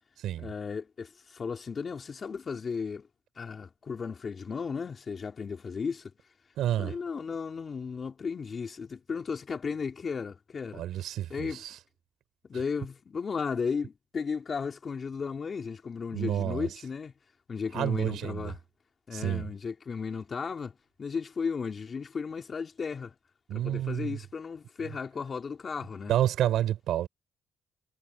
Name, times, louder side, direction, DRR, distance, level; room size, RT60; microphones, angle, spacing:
voice 1, 0.4-3.1 3.4-6.1 6.8-11.6 12.5-17.1 17.5-18.6 19.1-20.7 21.0-23.1 23.5-26.2, left 5 dB, 40° left, 4.0 m, -35 dB
voice 2, 6.6-6.9 10.7-11.8 16.1-16.7 17.7-18.5 19.1-19.4 23.5-24.2 26.1-27.1, right 12 dB, 80° right, 4.3 m, -29 dB
cardioid pair, 90°, 0 cm